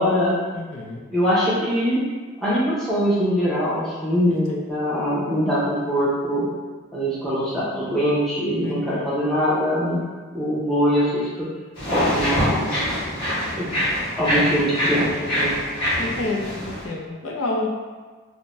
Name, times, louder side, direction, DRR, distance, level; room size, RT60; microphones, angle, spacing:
voice 1, 0.0-0.4 1.1-2.0 2.4-6.5 6.9-10.0 10.3-11.5 11.9-12.7 13.6-13.7 14.2-15.5, equal, ahead, -9 dB, 0.7 m, -22 dB
voice 2, 0.5-1.1 4.3-4.6 8.6-9.1 16.0-17.7, left 2 dB, 85° left, -1 dB, 0.5 m, -29 dB
sound 1, 11.7-16.9, equal, 55° left, 1.2 m, -24 dB
2.6 x 2.1 x 3.1 m, 1.4 s
head